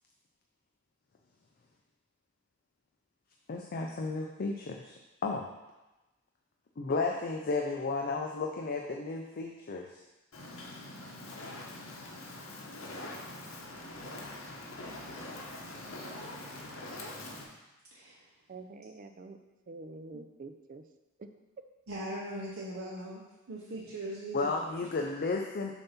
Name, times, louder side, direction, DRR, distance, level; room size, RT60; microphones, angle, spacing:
voice 1, 3.5-5.0 5.2-5.5 6.8-9.9 24.3-25.7, left 3 dB, 45° left, 2 dB, 0.4 m, -33 dB
Fire, 10.3-17.4, left 2 dB, 75° left, 1.0 m, -43 dB
voice 2, 17.9-18.2 21.9-23.2 23.5-24.5, right 1 dB, 75° right, -5 dB, 0.8 m, -39 dB
voice 3, 18.5-19.4 19.7-20.8 21.2-21.3, right 3 dB, 40° right, 7 dB, 0.5 m, -46 dB
6.9 x 2.7 x 5.7 m, 1.0 s
head